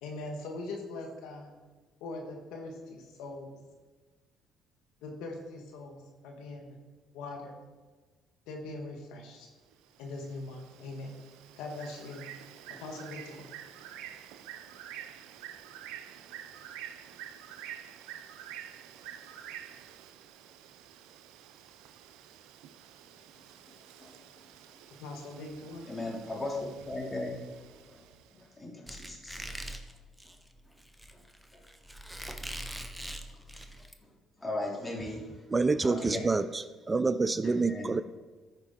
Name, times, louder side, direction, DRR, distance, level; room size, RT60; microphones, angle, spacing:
voice 1, 0.0-1.5 2.0-3.5 5.0-6.8 7.1-7.5 8.5-9.5 10.0-11.2 11.6-12.3 12.8-13.4 25.0-25.9, left 2 dB, 80° left, 1.4 m, -41 dB
Bird, 9.7-28.5, right 10 dB, 80° right, 0.5 m, -48 dB
voice 2, 23.7-24.4 24.7-24.8 25.9-27.3 27.7-28.0 28.3-29.4 30.6-30.7 31.1-31.2 31.5-31.6 33.3-33.4 33.7-33.8 34.0-34.1 34.4-35.3 35.8-36.2 37.4-38.0, left 2 dB, 25° left, 2.9 m, -38 dB
Squeak, 28.9-33.9, right 1 dB, 5° right, 1.0 m, -42 dB
voice 3, 35.5-38.0, right 3 dB, 25° right, 0.4 m, -27 dB
13.5 x 5.1 x 3.7 m
supercardioid pair, 65°, 0 cm